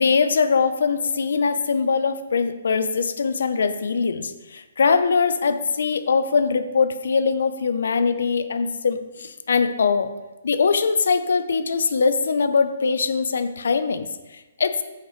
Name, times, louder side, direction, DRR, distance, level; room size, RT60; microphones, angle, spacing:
voice 1, 0.0-10.1 10.4-14.8, left 5 dB, 70° left, 10 dB, 0.6 m, -22 dB
8.0 x 6.6 x 3.1 m, 1.1 s
hypercardioid pair, 170°, 0 cm